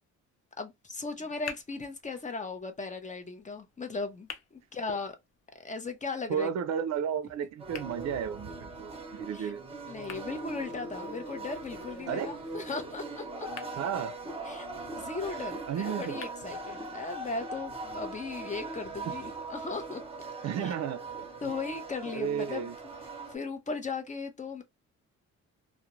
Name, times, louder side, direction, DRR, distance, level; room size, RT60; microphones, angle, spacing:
voice 1, 0.6-5.1 5.6-6.5 9.3-9.5 9.8-13.5 14.5-20.0 20.6-20.7 21.4-22.7 23.3-24.6, left 4 dB, 25° left, 0.6 m, -37 dB
sound 1, 1.0-17.0, left 7 dB, 60° left, 0.7 m, -52 dB
voice 2, 6.3-9.6 12.1-12.3 13.8-14.1 15.7-16.2 19.1-19.2 20.4-21.0 22.1-22.8, right 8 dB, 60° right, 0.4 m, -33 dB
sound 2, 7.6-23.4, right 3 dB, 20° right, 0.8 m, -40 dB
2.4 x 2.0 x 2.9 m
cardioid pair, 90°, 30 cm